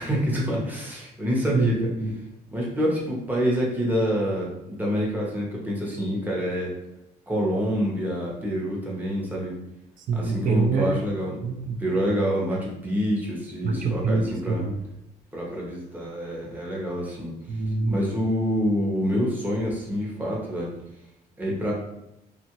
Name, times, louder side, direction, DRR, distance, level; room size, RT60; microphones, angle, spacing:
voice 1, 0.0-1.8 2.5-6.8 7.3-9.6 10.1-11.4 11.8-14.6 15.3-17.3 17.9-20.7 21.4-21.7, equal, 10° right, -3 dB, 0.9 m, -27 dB
voice 2, 1.5-2.1 10.1-11.0 11.4-11.8 13.6-14.7 17.5-18.0, right 3 dB, 50° right, 4 dB, 0.5 m, -25 dB
2.7 x 2.5 x 2.9 m, 0.85 s
cardioid pair, 110°, 17 cm